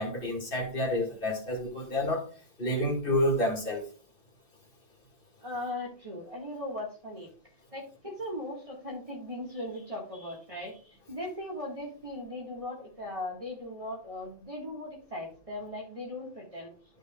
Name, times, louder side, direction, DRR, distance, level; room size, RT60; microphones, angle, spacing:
voice 1, 0.0-2.3 2.6-3.8, left 1 dB, 50° left, 2.4 m, -29 dB
voice 2, 5.4-7.3 7.7-16.7, left 1 dB, 30° right, 2.0 m, -38 dB
12.5 x 5.5 x 2.4 m
omnidirectional pair, 1.1 m